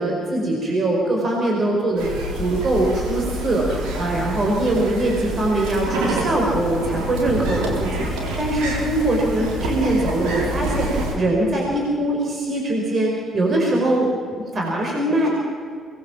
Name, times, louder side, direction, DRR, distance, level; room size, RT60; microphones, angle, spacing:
voice 1, 0.0-2.1 2.3-15.3, right 1 dB, 40° right, -1 dB, 5.4 m, -22 dB
sound 1, 2.0-11.1, right 1 dB, 70° right, 4.0 m, -27 dB
23.5 x 20.0 x 7.4 m, 2.1 s
figure-of-eight pair, 45°, 0 cm